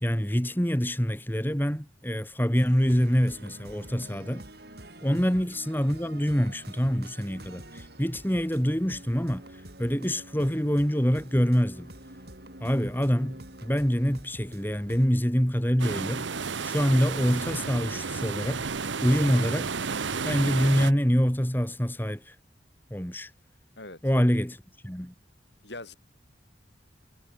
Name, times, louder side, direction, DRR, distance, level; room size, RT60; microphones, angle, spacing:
voice 1, 0.0-4.4 5.0-9.4 9.8-11.9 12.6-16.3 16.6-18.7 19.0-19.7 20.2-22.3 22.9-23.3 24.0-24.6 24.8-25.1, equal, 10° left, 2.4 m, -25 dB
sound 1, 2.5-15.1, right 1 dB, 55° right, 6.4 m, -47 dB
sound 2, 15.8-20.9, right 5 dB, 75° right, 1.0 m, -32 dB
voice 2, 25.6-25.9, left 2 dB, 65° left, 4.8 m, -42 dB
head